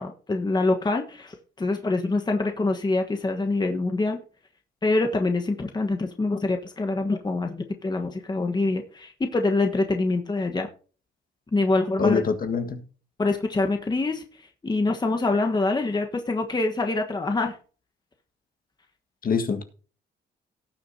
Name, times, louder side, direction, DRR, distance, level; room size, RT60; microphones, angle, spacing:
voice 1, 0.0-4.2 4.8-10.7 11.5-12.2 13.2-17.6, left 2 dB, 20° left, 4 dB, 1.3 m, -25 dB
voice 2, 12.0-12.8 19.2-19.6, left 5 dB, 45° left, 6 dB, 1.7 m, -24 dB
18.0 x 6.7 x 2.8 m, 0.38 s
cardioid pair, 90°, 20 cm